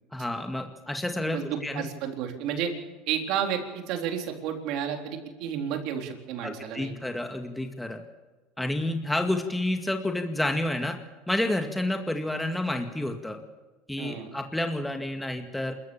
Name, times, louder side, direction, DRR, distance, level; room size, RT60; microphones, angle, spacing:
voice 1, 0.1-1.8 6.4-8.0 8.6-11.0 11.3-13.4 13.9-15.7, left 1 dB, 5° left, 4 dB, 2.0 m, -29 dB
voice 2, 1.3-2.7 3.1-6.9 14.0-14.3, right 8 dB, 60° right, 4 dB, 3.8 m, -31 dB
27.5 x 14.5 x 7.2 m, 1.2 s
supercardioid pair, 100°, 0 cm